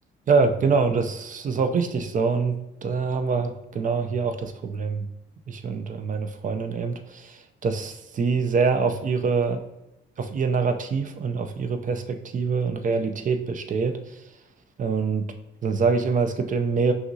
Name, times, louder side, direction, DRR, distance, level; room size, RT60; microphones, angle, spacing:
voice 1, 0.3-5.1 5.5-9.6 10.2-14.2 14.8-15.3 15.6-16.9, right 4 dB, 40° right, 8 dB, 0.5 m, -25 dB
5.8 x 2.6 x 2.7 m, 0.90 s
cardioid pair, 90°, 20 cm